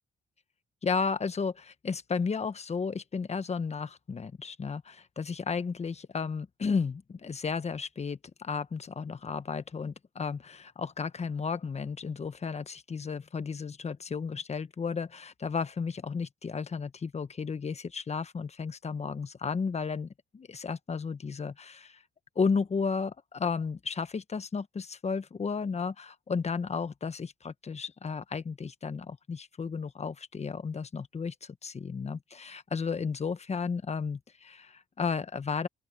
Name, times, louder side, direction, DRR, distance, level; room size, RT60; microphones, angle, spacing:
voice 1, 0.8-22.0 22.3-35.7, left 5 dB, 35° left, 1.2 m, -33 dB
open air
cardioid pair, 90°, 20 cm